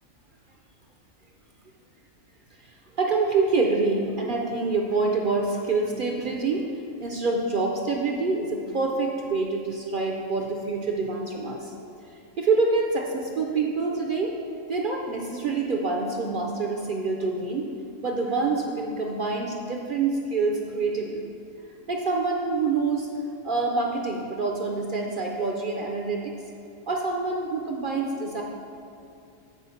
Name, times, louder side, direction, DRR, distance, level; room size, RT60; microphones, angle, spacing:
voice 1, 2.6-11.7 12.4-14.3 14.7-17.7 18.0-21.3 21.9-23.1 23.4-26.4 26.9-28.4, right 3 dB, 55° right, 1 dB, 0.6 m, -26 dB
8.2 x 4.5 x 5.6 m, 2.5 s
omnidirectional pair, 1.4 m